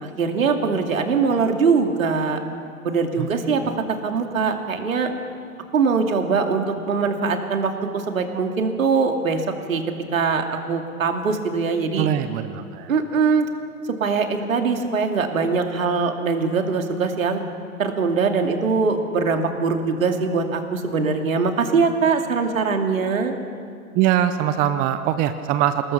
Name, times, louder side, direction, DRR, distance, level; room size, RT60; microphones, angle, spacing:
voice 1, 0.0-2.4 2.8-3.6 3.9-5.1 5.7-9.8 10.1-12.1 12.9-13.5 14.0-17.4 17.8-23.3, right 5 dB, 65° right, 5 dB, 2.6 m, -22 dB
voice 2, 12.0-12.9 23.9-25.9, right 11 dB, 20° right, 11 dB, 0.6 m, -22 dB
27.0 x 20.0 x 5.9 m, 2.4 s
figure-of-eight pair, 105°, 43 cm